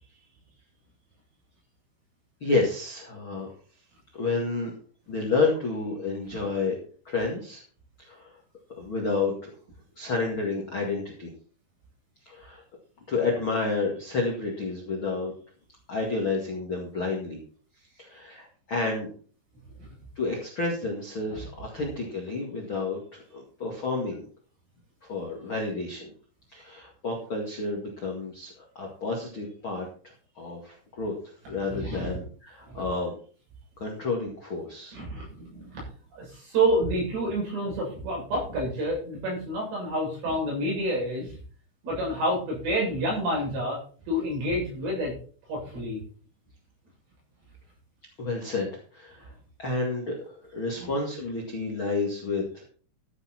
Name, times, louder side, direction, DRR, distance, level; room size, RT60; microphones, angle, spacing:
voice 1, 2.4-3.5 4.1-4.7 5.1-6.7 7.0-7.6 8.0-8.3 8.8-9.5 10.0-11.3 12.2-12.6 13.1-15.3 15.9-17.4 18.0-19.1 20.1-24.2 25.0-26.1 26.5-29.9 30.3-31.1 31.5-33.1 33.8-35.0 48.2-49.3 49.6-52.6, left 3 dB, 45° left, -1 dB, 1.7 m, -30 dB
voice 2, 31.6-32.2 32.7-32.9 34.9-35.8 36.1-41.3 41.8-43.8 44.1-45.1 45.5-46.0 50.7-50.9, right 1 dB, 65° right, -3 dB, 9.2 m, -28 dB
13.0 x 8.9 x 4.4 m, 0.43 s
omnidirectional pair, 5.3 m